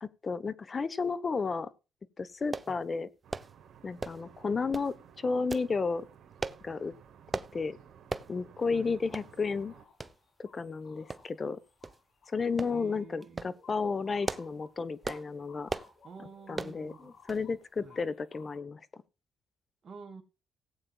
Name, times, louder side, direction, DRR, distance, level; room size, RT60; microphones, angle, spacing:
voice 1, 0.0-1.7 2.2-3.1 3.8-6.0 6.6-6.9 7.5-7.8 8.3-9.7 10.4-11.6 12.3-15.7 16.5-19.0, left 4 dB, 35° left, 1.2 m, -33 dB
sound 1, 2.5-2.7 3.3-3.5 4.0-4.3 4.7-4.9 5.5-5.7 6.4-6.6 7.3-7.5 8.1-8.3 8.7-8.8 9.1-9.3 10.0-10.1 11.1-11.5 11.8-12.0 12.6-12.8 13.2-13.5 14.0-14.6 15.0-15.3 15.7-15.9 16.5-16.8 17.3-17.5 17.8-17.9, right 3 dB, 25° right, 0.9 m, -37 dB
sound 2, 3.2-9.8, right 8 dB, 65° right, 2.6 m, -56 dB
sound 3, 8.6-18.6, left 5 dB, 60° left, 4.1 m, -60 dB
voice 2, 12.7-13.6 16.0-17.2 17.8-18.0 19.8-20.2, right 5 dB, 45° right, 2.3 m, -49 dB
18.5 x 8.8 x 2.4 m
cardioid pair, 90°, 0 cm